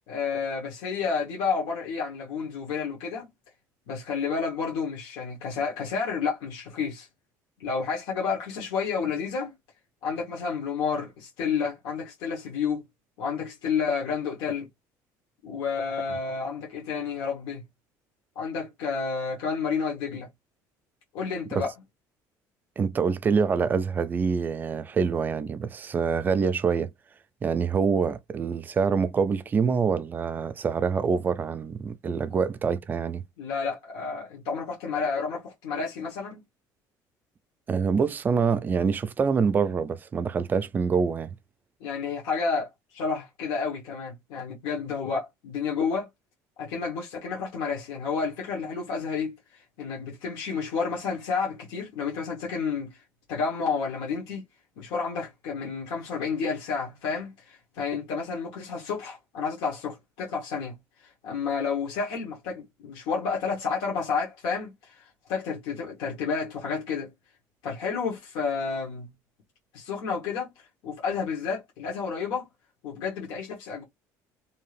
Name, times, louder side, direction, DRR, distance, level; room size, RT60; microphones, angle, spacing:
voice 1, 0.1-3.3 3.9-7.1 7.6-9.5 10.0-12.8 13.2-14.7 15.4-17.6 18.3-20.3 21.1-21.7 33.4-36.4 41.8-46.1 46.6-53.0 53.3-54.4 54.8-60.8 61.0-67.1 67.6-69.1 69.7-72.5 72.8-73.8, left 5 dB, 90° left, 1.1 m, -30 dB
voice 2, 22.8-26.9 27.4-33.2 37.7-41.3, right 5 dB, 25° right, 0.3 m, -25 dB
2.7 x 2.4 x 3.2 m
cardioid pair, 130°, 8 cm